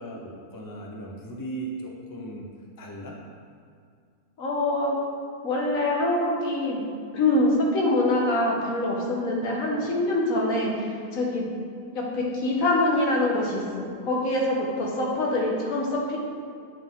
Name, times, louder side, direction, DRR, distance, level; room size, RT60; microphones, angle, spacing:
voice 1, 0.0-2.5 2.8-3.2, right 2 dB, 25° left, -1 dB, 0.5 m, -37 dB
voice 2, 4.4-5.0 5.4-6.8 7.1-11.5 11.9-16.2, left 1 dB, 65° left, -2 dB, 1.6 m, -25 dB
8.6 x 5.6 x 3.7 m, 2.2 s
omnidirectional pair, 1.6 m